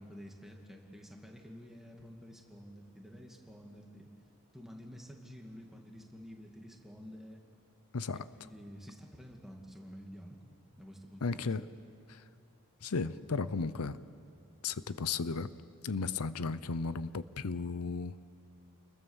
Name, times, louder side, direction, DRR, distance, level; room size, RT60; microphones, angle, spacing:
voice 1, 0.0-4.1 4.5-7.4 8.4-10.5 10.8-11.5, equal, ahead, 1 dB, 2.2 m, -50 dB
voice 2, 7.9-8.2 11.2-11.7 12.1-12.2 12.8-14.0 14.6-15.5 15.8-18.2, left 4 dB, 90° left, 15 dB, 0.7 m, -35 dB
29.0 x 21.0 x 7.2 m, 2.4 s
head